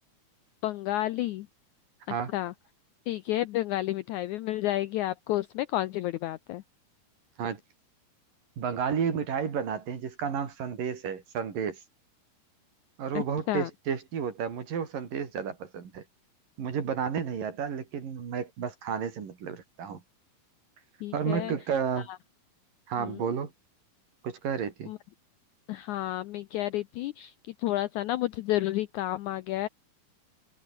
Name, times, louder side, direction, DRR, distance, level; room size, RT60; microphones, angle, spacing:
voice 1, 0.6-1.5 2.1-2.5 3.1-6.6 13.1-13.7 21.0-21.5 22.0-22.2 23.0-23.4 24.9-25.0 25.7-29.7, left 15 dB, 80° left, 1.7 m, -31 dB
voice 2, 8.6-11.8 13.0-16.0 16.6-20.0 21.1-22.1 22.9-23.5 24.2-24.9, right 7 dB, 65° right, 4.9 m, -31 dB
omnidirectional pair, 4.2 m